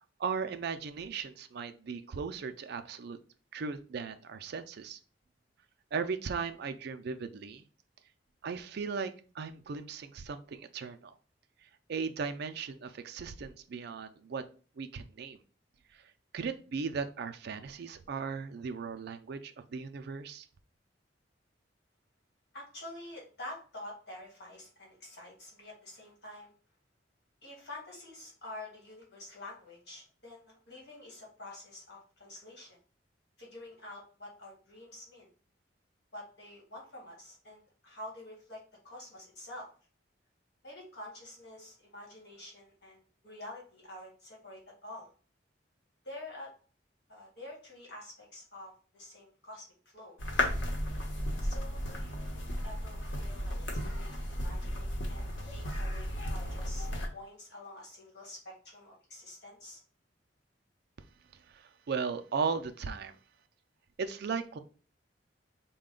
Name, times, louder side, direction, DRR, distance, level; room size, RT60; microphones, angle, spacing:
voice 1, 0.2-3.2 3.5-5.0 5.9-7.6 8.4-11.1 11.9-14.4 14.8-15.4 15.9-16.0 16.3-20.5 61.5-63.2 64.0-64.6, right 5 dB, 60° right, 8 dB, 0.4 m, -37 dB
voice 2, 22.5-26.5 27.4-32.8 33.4-35.3 36.1-39.7 40.6-45.1 46.0-46.5 47.1-49.7 49.9-50.2 51.4-59.8, left 1 dB, 60° left, -3 dB, 1.7 m, -48 dB
sound 1, 50.2-57.1, equal, 80° left, 1.0 m, -34 dB
4.1 x 2.2 x 3.7 m, 0.39 s
head